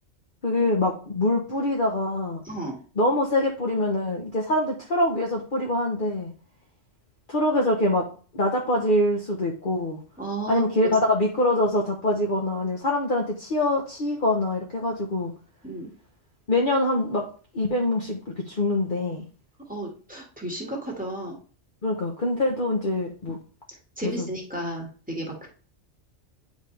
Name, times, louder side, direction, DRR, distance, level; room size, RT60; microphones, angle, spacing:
voice 1, 0.4-2.4 3.0-6.3 7.3-8.0 8.3-10.0 10.5-15.3 16.5-17.2 17.5-19.2 21.8-23.4 24.0-24.3, left 1 dB, 45° left, 0 dB, 1.3 m, -24 dB
voice 2, 2.4-2.8 10.2-10.9 15.6-15.9 19.7-21.3 24.0-25.5, right 1 dB, 5° right, -2 dB, 2.0 m, -33 dB
9.9 x 5.3 x 3.4 m, 0.39 s
omnidirectional pair, 1.3 m